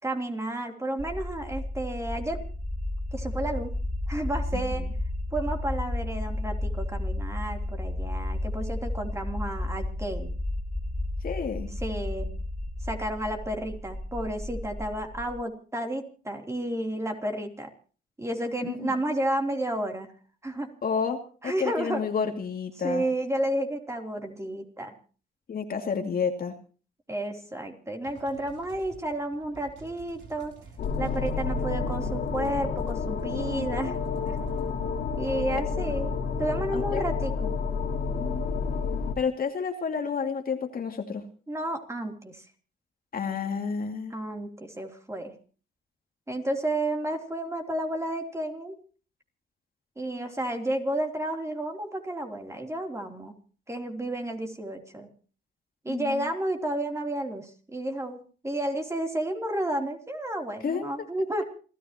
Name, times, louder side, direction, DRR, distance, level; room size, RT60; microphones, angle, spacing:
voice 1, 0.0-2.4 3.1-3.7 4.1-4.8 5.3-10.3 11.8-12.3 12.9-17.7 18.2-20.1 20.4-20.7 21.4-22.0 22.8-24.9 27.1-30.5 31.0-34.0 34.3-34.4 35.2-36.1 36.4-37.6 41.5-42.4 44.1-45.3 46.3-48.8 50.0-53.3 53.7-55.1 55.8-58.2 58.4-61.4, right 1 dB, 15° right, 3 dB, 3.3 m, -31 dB
sound 1, 1.0-15.4, left 1 dB, 5° left, 1.2 m, -33 dB
voice 2, 11.2-11.7 18.6-18.9 20.8-23.0 25.5-26.5 33.4-34.0 36.7-37.2 38.2-38.6 39.2-41.2 43.1-44.2 55.9-56.3 60.6-61.1, left 6 dB, 50° left, 4 dB, 2.5 m, -31 dB
sound 2, 28.0-34.7, right 4 dB, 70° right, 5.1 m, -50 dB
sound 3, 30.8-39.1, left 5 dB, 65° left, 2.8 m, -30 dB
28.5 x 14.0 x 3.0 m, 0.39 s
cardioid pair, 90°, 20 cm